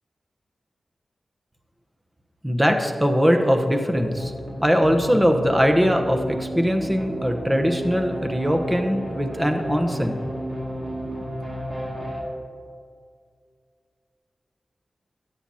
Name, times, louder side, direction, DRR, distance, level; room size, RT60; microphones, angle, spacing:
voice 1, 2.4-4.3 4.6-10.2, equal, 10° right, 5 dB, 0.9 m, -21 dB
sound 1, 3.9-12.2, equal, 45° right, 2.2 m, -33 dB
13.5 x 8.8 x 2.8 m, 2.2 s
wide cardioid pair, 75°, 0 cm